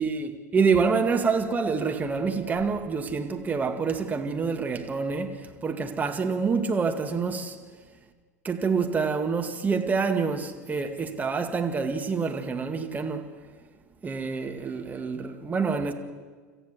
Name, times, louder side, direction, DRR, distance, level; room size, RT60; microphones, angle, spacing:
voice 1, 0.0-7.6 8.4-13.4 14.0-15.9, right 5 dB, 20° right, 2.1 m, -27 dB
27.0 x 14.5 x 7.8 m
figure-of-eight pair, 85°, 9 cm